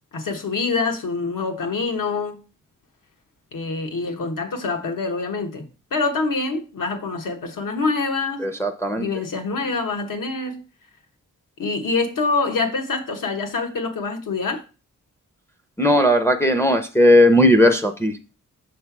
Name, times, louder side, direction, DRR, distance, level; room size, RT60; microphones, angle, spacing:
voice 1, 0.1-2.4 3.5-8.5 8.9-10.6 11.6-14.6, left 4 dB, 80° left, 1.1 m, -25 dB
voice 2, 8.4-9.1 15.8-18.1, left 1 dB, 10° left, 0.5 m, -16 dB
6.5 x 3.3 x 5.8 m
wide cardioid pair, 155°, 32 cm